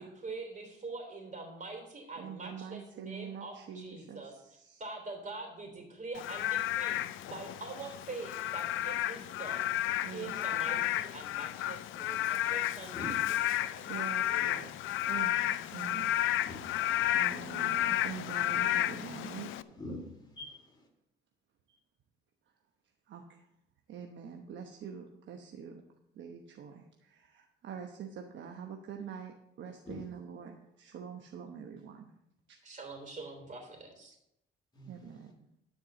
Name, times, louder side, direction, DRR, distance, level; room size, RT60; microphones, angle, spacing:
voice 1, 0.0-4.3 4.8-9.8 10.1-13.9 14.3-14.8 32.6-34.1, right 3 dB, 40° right, 3 dB, 3.3 m, -44 dB
voice 2, 2.2-4.8 10.0-10.8 13.9-16.5 16.7-19.8 21.7-21.8 23.1-23.5 23.9-25.8 26.1-32.1 32.5-32.6 34.9-35.5, right 7 dB, 70° right, 3 dB, 1.0 m, -45 dB
Frog / Rain, 6.2-19.6, left 14 dB, 85° left, 0.4 m, -32 dB
voice 3, 19.7-20.9 29.8-30.0 34.7-35.2, left 1 dB, 20° left, 0 dB, 3.2 m, -44 dB
12.5 x 4.7 x 6.8 m, 0.83 s
cardioid pair, 90°, 20 cm